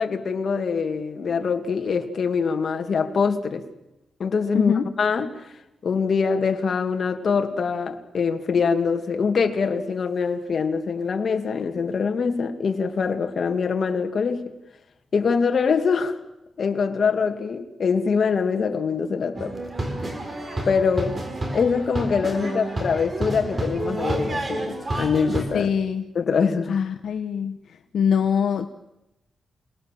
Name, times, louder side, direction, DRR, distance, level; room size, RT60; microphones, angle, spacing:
voice 1, 0.0-3.6 4.2-5.3 5.8-14.5 15.1-16.2 16.6-19.5 20.6-21.2 21.5-25.7 26.1-26.8, left 5 dB, 55° left, 2.2 m, -24 dB
sound 1, 19.4-25.4, right 1 dB, 30° right, 4.3 m, -29 dB
voice 2, 25.5-26.0 26.7-27.6 27.9-28.7, left 7 dB, 80° left, 1.0 m, -23 dB
28.0 x 19.0 x 7.5 m
wide cardioid pair, 130°, 0 cm